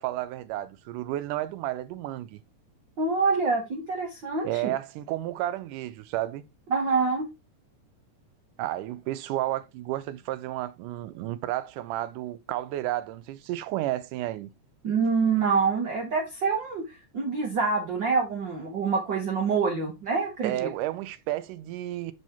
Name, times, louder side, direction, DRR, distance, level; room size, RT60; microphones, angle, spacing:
voice 1, 0.0-2.4 4.4-6.4 8.6-14.5 20.4-22.1, right 14 dB, 80° right, 2.1 m, -32 dB
voice 2, 3.0-4.7 6.7-7.3 14.8-16.8 17.1-20.7, right 4 dB, 60° right, 1.1 m, -26 dB
6.3 x 4.9 x 4.3 m
omnidirectional pair, 3.7 m